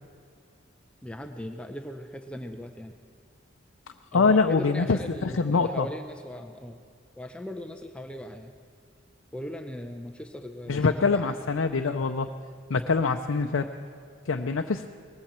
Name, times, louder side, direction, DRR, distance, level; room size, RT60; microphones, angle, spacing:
voice 1, 1.0-2.9 4.1-6.8 7.2-8.5 9.3-11.4, left 1 dB, 5° left, 5 dB, 0.6 m, -39 dB
voice 2, 4.1-5.9 10.7-12.3 12.7-13.7 14.3-14.8, left 4 dB, 90° left, 5 dB, 0.6 m, -24 dB
19.5 x 15.5 x 4.4 m, 2.3 s
head